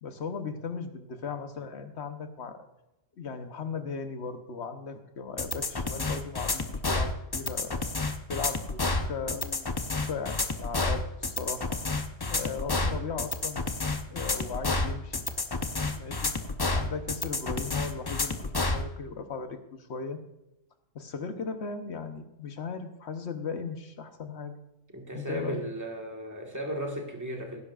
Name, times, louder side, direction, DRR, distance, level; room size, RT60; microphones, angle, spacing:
voice 1, 0.0-2.6 3.2-7.8 8.3-9.7 10.0-11.8 12.3-13.7 14.1-15.2 15.9-16.3 16.7-20.2 20.9-24.5 25.1-25.6, left 5 dB, 55° left, 7 dB, 1.2 m, -37 dB
sound 1, 5.4-18.8, left 3 dB, 35° left, 0.3 m, -30 dB
voice 2, 24.9-27.6, equal, 15° right, 1 dB, 1.6 m, -35 dB
18.0 x 10.5 x 2.5 m, 0.92 s
omnidirectional pair, 1.4 m